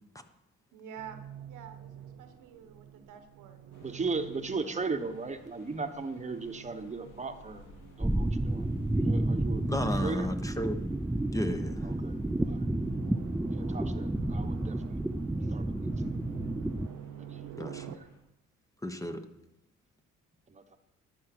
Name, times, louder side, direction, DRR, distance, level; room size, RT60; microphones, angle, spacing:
voice 1, 0.7-1.2 1.5-4.1 4.5-4.7, right 8 dB, 90° right, 7 dB, 1.4 m, -49 dB
sound 1, 1.0-18.0, right 11 dB, 65° right, 0.8 m, -48 dB
sound 2, 3.7-18.2, left 2 dB, 90° left, 2.6 m, -59 dB
voice 2, 3.8-9.7 10.0-10.3 11.8-12.1 12.5-12.6 13.5-15.0 15.5-16.2 17.2-18.0 20.5-20.8, right 4 dB, 25° right, 7 dB, 1.2 m, -37 dB
sound 3, 8.0-16.9, right 1 dB, 5° right, 0.4 m, -31 dB
voice 3, 9.7-10.8 11.3-11.9 17.6-17.9 18.8-19.2, left 1 dB, 10° left, 7 dB, 1.1 m, -33 dB
11.5 x 7.7 x 6.1 m, 0.91 s
cardioid pair, 90°, 30 cm